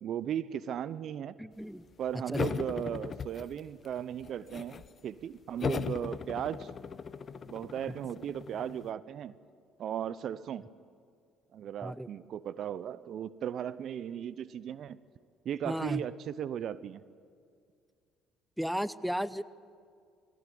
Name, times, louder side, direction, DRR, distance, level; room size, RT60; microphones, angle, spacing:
voice 1, 0.0-1.3 2.0-6.7 7.5-9.3 9.8-10.6 11.5-15.0 15.4-17.0, right 9 dB, 60° right, 18 dB, 0.7 m, -36 dB
voice 2, 1.4-1.8 2.3-2.4 11.8-12.1 15.6-16.0 18.6-19.4, equal, ahead, 17 dB, 0.7 m, -34 dB
sound 1, 2.3-3.9 4.2-4.9 5.6-8.9, left 6 dB, 45° left, 0.8 m, -37 dB
21.0 x 17.5 x 9.4 m, 2.2 s
hypercardioid pair, 65°, 0 cm